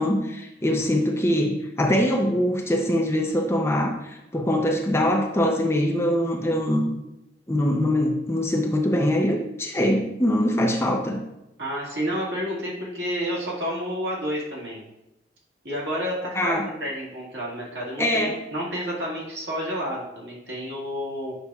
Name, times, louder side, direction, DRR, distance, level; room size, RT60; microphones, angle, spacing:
voice 1, 0.0-6.9 7.5-11.2 16.4-16.7 18.0-18.4, left 1 dB, 15° left, 1 dB, 0.5 m, -23 dB
voice 2, 11.6-14.8 15.6-21.3, equal, 70° right, -5 dB, 1.9 m, -30 dB
7.9 x 5.4 x 2.4 m, 0.90 s
head